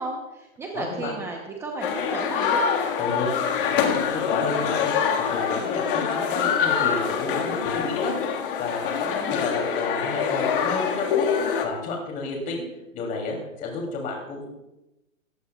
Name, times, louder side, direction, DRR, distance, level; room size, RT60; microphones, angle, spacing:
voice 1, 0.0-2.7 9.1-9.6, right 3 dB, 5° right, 1 dB, 0.8 m, -34 dB
voice 2, 0.7-1.2 3.0-3.3 3.6-8.1 8.6-11.3 11.6-12.6 12.9-14.4, left 3 dB, 20° left, 0 dB, 3.0 m, -31 dB
sound 1, 1.8-11.7, left 7 dB, 40° left, 1.8 m, -25 dB
21.0 x 15.5 x 2.4 m, 0.96 s
hypercardioid pair, 150°, 42 cm